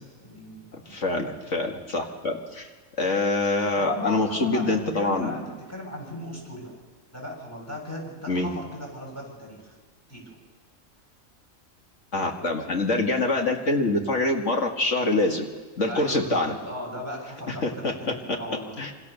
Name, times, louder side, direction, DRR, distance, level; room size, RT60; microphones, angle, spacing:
voice 1, 0.0-1.0 3.8-6.7 7.1-9.8 10.1-10.4 15.9-18.9, left 1 dB, 10° left, -1 dB, 7.9 m, -37 dB
voice 2, 0.9-2.7 3.0-5.3 8.3-8.5 12.1-15.5 15.8-16.5 17.5-17.9 18.3-18.4 18.8-18.9, left 2 dB, 60° left, 3 dB, 2.4 m, -25 dB
26.5 x 26.0 x 6.9 m, 1.4 s
omnidirectional pair, 1.4 m